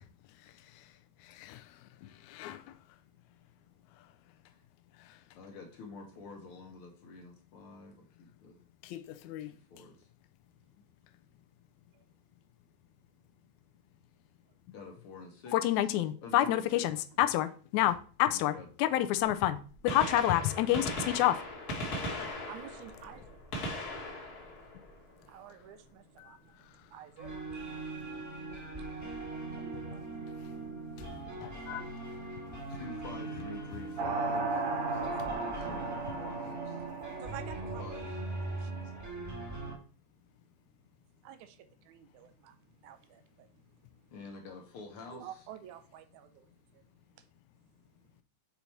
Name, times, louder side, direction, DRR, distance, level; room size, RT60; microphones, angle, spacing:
voice 1, 1.3-1.6 2.3-2.6 8.8-9.5 15.5-18.5 18.8-19.6 19.8-20.8 21.1-21.3 26.2-26.3 31.4-31.8, left 13 dB, 80° left, 1.8 m, -29 dB
voice 2, 5.3-8.6 9.5-10.1 14.7-15.6 16.2-16.9 18.2-18.7 19.0-19.4 20.7-21.3 21.7-22.3 32.7-34.6 34.9-36.8 37.8-38.2 44.1-45.4, left 3 dB, 60° left, 1.5 m, -48 dB
Gunshot gunfire, 19.2-19.3 19.7-25.6 27.5-27.7 28.7-28.8 30.4-30.5 31.9-32.0 32.1-32.2, left 1 dB, 45° left, 1.3 m, -39 dB
voice 3, 22.5-31.9 32.3-32.8 37.2-37.8 38.3-39.0 41.2-44.1 45.1-46.8 47.1-47.3, right 11 dB, 75° right, 2.0 m, -53 dB
sound 1, 27.2-39.8, right 3 dB, 10° right, 1.0 m, -41 dB
sound 2, 34.0-39.0, right 3 dB, 60° right, 1.6 m, -36 dB
7.1 x 4.1 x 4.4 m
omnidirectional pair, 3.7 m